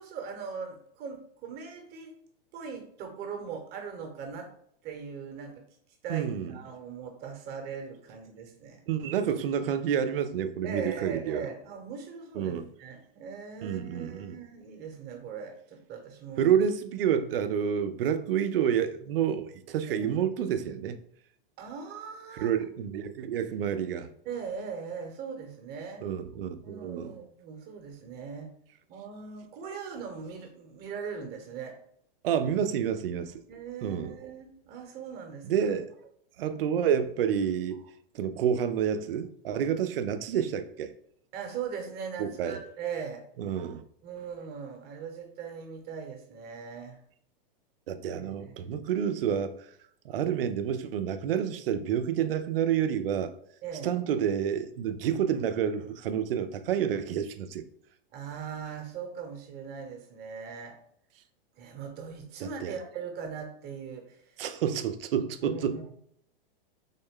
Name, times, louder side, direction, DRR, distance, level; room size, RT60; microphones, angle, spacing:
voice 1, 0.0-2.1 2.5-4.5 4.8-5.6 6.0-8.8 10.6-12.5 12.8-16.4 20.0-20.1 21.6-22.5 24.2-26.1 26.6-28.5 28.9-31.8 33.5-35.7 41.3-43.2 44.0-47.0 48.2-48.7 53.6-54.0 58.1-60.8 61.6-64.4 65.1-65.9, right 6 dB, 35° right, 3 dB, 1.0 m, -40 dB
voice 2, 6.1-6.6 8.9-11.5 12.4-12.7 13.6-14.4 16.4-21.0 22.3-24.1 26.0-27.2 32.2-33.4 33.8-34.2 35.4-35.9 36.4-37.8 38.1-40.9 42.2-42.6 43.4-43.8 47.9-49.5 50.0-53.3 53.8-57.6 62.4-62.8 64.4-65.8, right 8 dB, 75° right, 10 dB, 0.5 m, -29 dB
3.7 x 2.1 x 3.6 m, 0.67 s
hypercardioid pair, 115°, 29 cm